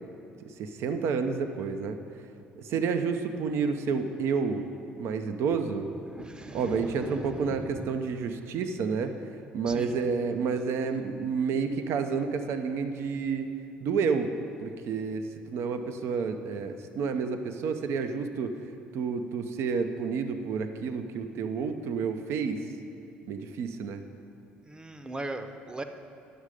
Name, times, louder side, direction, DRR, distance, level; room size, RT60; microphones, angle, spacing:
voice 1, 0.4-2.0 2.6-4.6 5.0-5.9 6.5-9.1 9.5-13.5 13.8-14.3 14.6-18.5 18.9-22.6 23.3-24.0, right 5 dB, 65° right, 8 dB, 0.6 m, -30 dB
voice 2, 6.1-7.9 9.7-9.9 24.6-25.8, right 2 dB, 20° right, 7 dB, 0.7 m, -39 dB
9.8 x 6.5 x 5.0 m, 2.6 s
hypercardioid pair, 65°, 5 cm